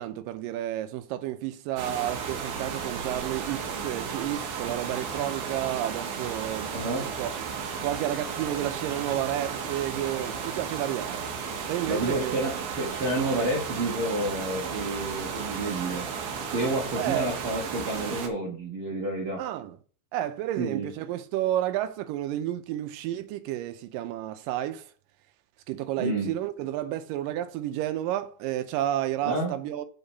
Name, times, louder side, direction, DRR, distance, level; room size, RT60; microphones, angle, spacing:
voice 1, 0.0-7.5 7.8-11.3 11.7-12.5 17.0-17.3 19.4-19.8 20.1-24.8 25.7-29.9, right 13 dB, 90° right, 2.3 m, -31 dB
sound 1, 1.8-18.3, right 6 dB, 70° right, 2.5 m, -34 dB
voice 2, 6.7-7.0 11.9-16.0 16.5-19.4 20.6-20.9 26.0-26.3 29.3-29.5, right 2 dB, 50° right, 1.8 m, -29 dB
7.0 x 4.8 x 5.6 m
omnidirectional pair, 3.8 m